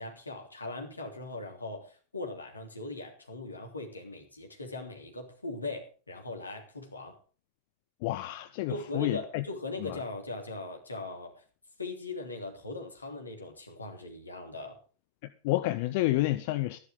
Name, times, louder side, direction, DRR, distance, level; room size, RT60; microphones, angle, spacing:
voice 1, 0.0-7.2 8.7-11.4 11.8-14.8, left 2 dB, 80° left, 3.2 m, -40 dB
voice 2, 8.0-9.4 9.8-10.0 15.4-16.8, left 17 dB, 50° left, 0.7 m, -29 dB
13.5 x 11.5 x 5.1 m
figure-of-eight pair, 90°, 0 cm